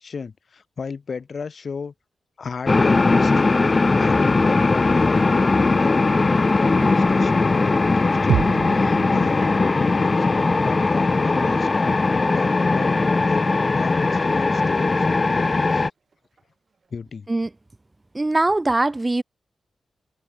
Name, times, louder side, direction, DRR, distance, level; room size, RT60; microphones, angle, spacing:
voice 1, 0.0-1.9 2.4-3.6 4.0-13.0 13.3-15.9 16.9-17.3, left 5 dB, 60° left, 2.1 m, -33 dB
sound 1, 2.7-15.9, left 3 dB, 40° left, 0.7 m, -19 dB
sound 2, 3.0-12.3 12.7-13.6 14.0-15.4 16.1-16.4 16.8-16.9, right 5 dB, 55° right, 4.4 m, -46 dB
sound 3, 8.3-12.2 12.5-12.6, right 10 dB, 90° right, 0.9 m, -31 dB
voice 2, 18.1-19.2, right 2 dB, 25° right, 0.6 m, -21 dB
supercardioid pair, 45°, 0 cm